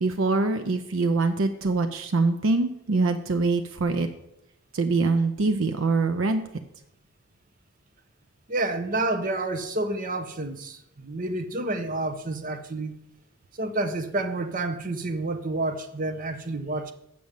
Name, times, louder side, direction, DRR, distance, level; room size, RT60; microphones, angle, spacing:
voice 1, 0.0-4.1 4.7-6.4, right 3 dB, 80° right, 0.6 m, -24 dB
voice 2, 8.5-12.9 13.6-16.9, right 2 dB, 45° right, 0.8 m, -29 dB
7.7 x 5.1 x 7.1 m
head